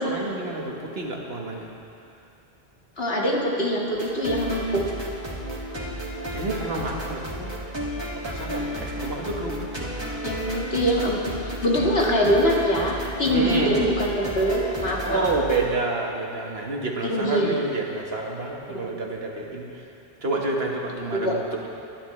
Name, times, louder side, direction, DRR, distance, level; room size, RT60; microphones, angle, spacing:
voice 1, 0.0-1.7 6.3-7.6 8.2-10.2 13.3-13.8 15.0-19.8 20.2-21.7, right 2 dB, 70° right, -1 dB, 1.8 m, -29 dB
voice 2, 3.0-4.9 10.2-11.2 11.4-15.3 17.0-17.6 18.7-18.9 21.1-21.4, equal, 70° left, -2 dB, 2.0 m, -23 dB
sound 1, 3.9-15.6, equal, 25° right, 2.1 m, -33 dB
23.5 x 11.0 x 3.2 m, 2.6 s
omnidirectional pair, 1.1 m